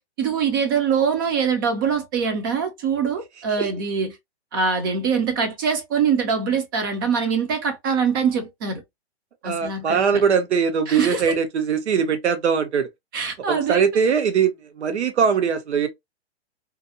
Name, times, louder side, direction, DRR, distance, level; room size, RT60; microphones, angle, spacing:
voice 1, 0.2-4.1 4.5-8.8 9.4-10.2 10.9-11.2 13.1-13.8, right 6 dB, 20° right, 0.4 m, -23 dB
voice 2, 9.4-12.9 13.5-15.9, right 6 dB, 75° right, 1.0 m, -21 dB
2.5 x 2.0 x 2.6 m
hypercardioid pair, 140°, 34 cm